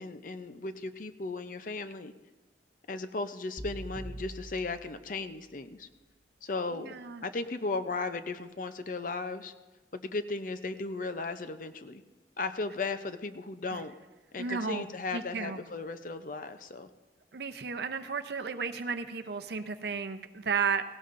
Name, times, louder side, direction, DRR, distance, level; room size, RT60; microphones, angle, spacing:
voice 1, 0.0-2.1 2.9-5.9 6.4-6.9 7.2-9.5 9.9-12.0 12.4-13.9 14.3-16.9, left 3 dB, 45° left, 10 dB, 0.5 m, -36 dB
sound 1, 3.6-5.7, right 1 dB, 25° right, 2.6 m, -44 dB
voice 2, 6.7-7.2 14.4-14.9 15.1-15.6 17.3-20.8, right 5 dB, 65° right, 8 dB, 0.6 m, -33 dB
17.5 x 17.0 x 2.6 m, 1.2 s
head